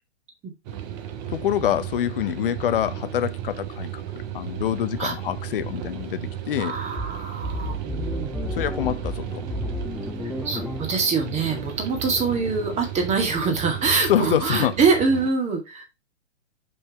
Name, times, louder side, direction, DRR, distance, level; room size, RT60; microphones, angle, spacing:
sound 1, 0.6-15.3, right 10 dB, 35° right, 1.3 m, -35 dB
voice 1, 1.3-4.0 4.3-6.2 6.5-6.7 8.5-9.4 14.1-14.8, left 11 dB, 50° left, 0.7 m, -25 dB
voice 2, 6.6-8.4 10.4-15.8, right 4 dB, 20° right, 1.9 m, -24 dB
sound 2, 7.0-12.6, left 1 dB, ahead, 0.7 m, -33 dB
5.6 x 5.4 x 4.5 m
hypercardioid pair, 130°, 35 cm